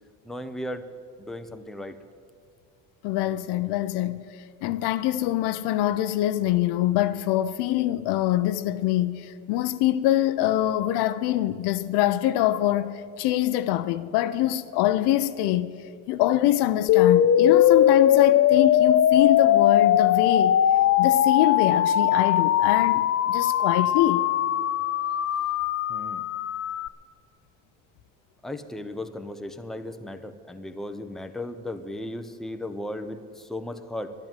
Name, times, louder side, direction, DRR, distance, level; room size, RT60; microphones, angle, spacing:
voice 1, 0.2-0.9 1.2-2.0 25.9-26.2 28.4-34.1, left 1 dB, ahead, 0.8 m, -36 dB
voice 2, 3.0-4.2 4.6-15.7 16.1-20.6 21.0-24.3, left 13 dB, 70° left, 0.7 m, -24 dB
sound 1, 16.9-26.9, left 11 dB, 35° left, 0.5 m, -20 dB
10.5 x 10.5 x 9.0 m
supercardioid pair, 90°, 42 cm